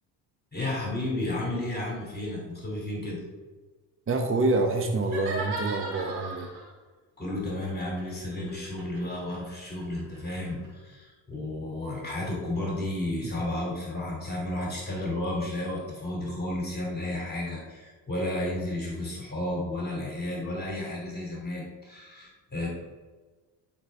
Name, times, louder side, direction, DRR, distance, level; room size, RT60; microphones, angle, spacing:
voice 1, 0.5-3.2 7.2-22.7, left 1 dB, 20° left, -3 dB, 2.6 m, -32 dB
voice 2, 4.1-6.5 13.2-13.3, right 2 dB, 30° right, 4 dB, 1.1 m, -27 dB
sound 1, 5.0-6.7 7.6-10.7, right 2 dB, 85° right, 2.5 m, -37 dB
11.0 x 5.5 x 3.4 m, 1.3 s
supercardioid pair, 85°, 43 cm